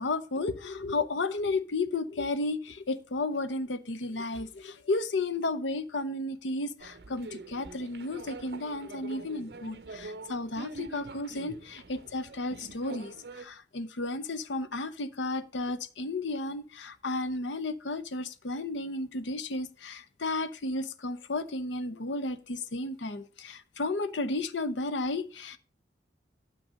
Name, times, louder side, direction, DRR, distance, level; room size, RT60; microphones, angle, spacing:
voice 1, 0.0-25.6, left 2 dB, 85° left, 0.7 m, -33 dB
sound 1, 6.8-13.4, right 3 dB, 60° right, 0.7 m, -45 dB
8.3 x 6.2 x 5.1 m
head